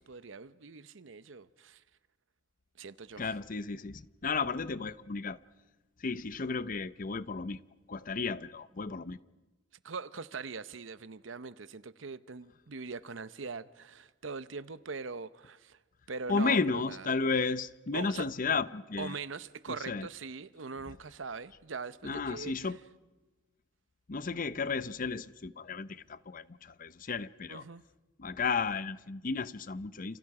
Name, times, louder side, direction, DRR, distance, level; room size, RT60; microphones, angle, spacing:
voice 1, 0.0-1.8 2.8-3.3 9.8-15.8 16.1-17.1 17.9-18.3 19.0-22.5 27.5-27.8, right 4 dB, 85° right, 0.8 m, -42 dB
voice 2, 3.2-5.4 6.0-7.6 7.9-9.2 16.3-19.2 19.7-20.1 22.0-22.8 24.1-27.6 28.2-30.2, left 4 dB, 45° left, 0.7 m, -33 dB
29.0 x 28.5 x 4.9 m
head